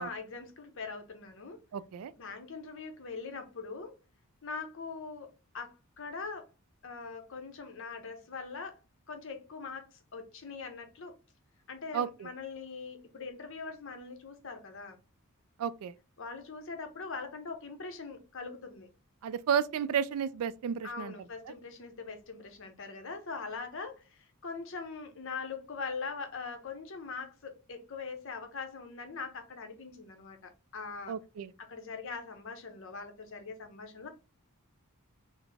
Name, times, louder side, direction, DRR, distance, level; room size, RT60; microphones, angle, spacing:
voice 1, 0.0-1.6 2.2-4.0 4.4-6.5 6.8-8.8 9.1-11.2 11.7-15.0 16.2-18.9 20.8-31.2 31.6-34.1, left 4 dB, 60° left, 0.8 m, -42 dB
voice 2, 1.7-2.1 11.9-12.3 15.6-15.9 19.2-21.1 31.1-31.5, right 8 dB, 75° right, 0.3 m, -32 dB
3.9 x 2.0 x 3.3 m
head